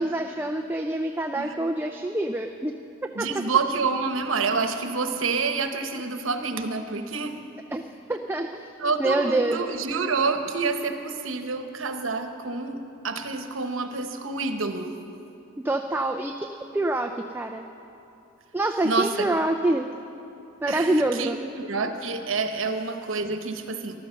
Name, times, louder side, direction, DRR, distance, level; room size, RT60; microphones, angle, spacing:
voice 1, 0.0-2.7 3.2-3.3 7.7-7.8 8.1-8.7 9.0-9.6 15.6-16.4 16.7-17.6 18.5-19.9 20.6-21.4, right 2 dB, 10° right, 4 dB, 0.4 m, -26 dB
voice 2, 3.1-7.4 8.8-14.9 18.8-19.3 20.7-23.9, right 4 dB, 70° right, 7 dB, 1.1 m, -28 dB
14.5 x 12.0 x 6.4 m, 2.8 s
head